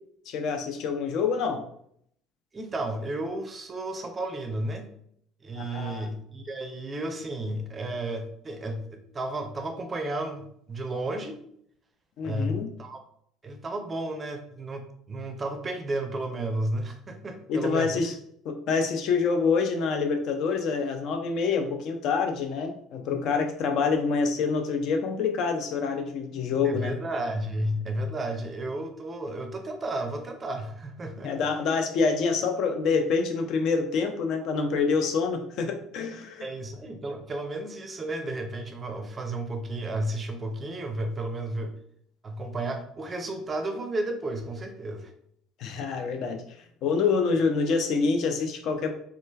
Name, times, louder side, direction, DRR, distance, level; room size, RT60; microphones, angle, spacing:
voice 1, 0.3-1.6 5.6-6.1 12.2-12.7 17.5-18.1 18.4-27.0 31.2-36.5 45.6-46.4 46.8-48.9, left 5 dB, 55° left, 5 dB, 0.4 m, -26 dB
voice 2, 2.5-4.9 5.4-11.4 12.2-13.0 13.4-17.9 26.6-31.5 36.4-41.7 42.2-45.1, right 1 dB, 30° right, 6 dB, 0.5 m, -33 dB
3.1 x 2.3 x 2.2 m, 0.68 s
figure-of-eight pair, 60°, 0 cm